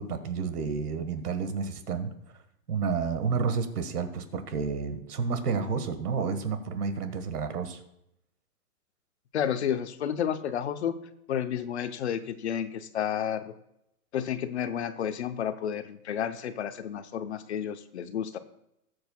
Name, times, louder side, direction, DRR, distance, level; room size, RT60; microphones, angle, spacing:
voice 1, 0.0-2.1 2.7-7.8, right 5 dB, 85° right, 9 dB, 1.6 m, -30 dB
voice 2, 9.3-10.9 11.3-13.5 14.1-18.4, left 9 dB, 50° left, 10 dB, 0.8 m, -31 dB
20.0 x 7.9 x 2.3 m, 0.79 s
hypercardioid pair, 165°, 45 cm